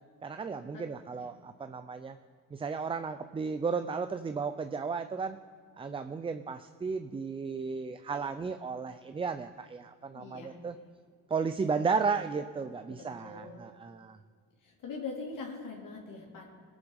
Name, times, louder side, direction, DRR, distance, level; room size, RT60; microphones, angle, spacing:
voice 1, 0.2-2.2 2.5-5.4 5.8-10.8 11.3-14.2, right 5 dB, 15° right, 10 dB, 0.4 m, -34 dB
voice 2, 10.1-10.6 12.9-13.6 14.6-16.5, left 4 dB, 60° left, -2 dB, 2.6 m, -42 dB
19.0 x 7.1 x 5.3 m, 2.1 s
cardioid pair, 100°, 36 cm